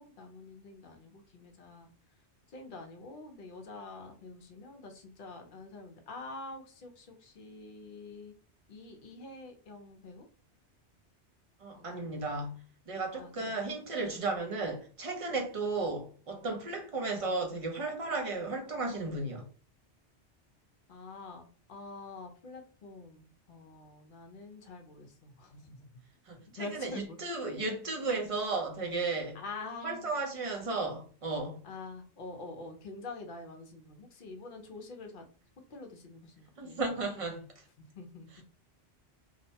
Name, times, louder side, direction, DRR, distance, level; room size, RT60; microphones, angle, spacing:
voice 1, 0.0-1.9 2.5-8.3 8.7-10.3 11.7-12.0 13.1-13.6 20.9-25.9 26.6-27.2 29.3-30.1 31.6-35.2 35.7-37.1 37.8-38.3, left 3 dB, 55° left, 0.7 m, -46 dB
voice 2, 11.6-19.5 26.3-29.4 29.8-31.6 36.6-37.5 38.3-38.4, right 3 dB, 40° right, 0.5 m, -34 dB
2.7 x 2.1 x 2.7 m
omnidirectional pair, 1.2 m